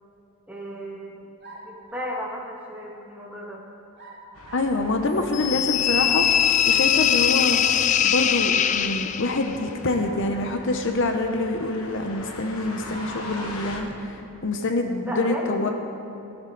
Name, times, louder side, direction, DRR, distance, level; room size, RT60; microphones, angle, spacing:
voice 1, 0.5-1.3 1.6-3.6 15.0-15.7, equal, 5° right, -3 dB, 1.8 m, -34 dB
sound 1, 1.4-2.3 4.0-4.8 6.7-7.5 9.9-10.7 11.5-11.6 12.9-13.6, right 2 dB, 50° right, 2.5 m, -45 dB
sound 2, 4.3-13.8, left 2 dB, 70° left, 1.4 m, -42 dB
voice 2, 4.5-7.6 8.0-14.1 14.4-15.7, left 2 dB, 55° left, 5 dB, 0.8 m, -26 dB
sound 3, 5.3-9.5, left 9 dB, 35° left, 0.3 m, -21 dB
16.5 x 12.0 x 3.9 m, 2.8 s
head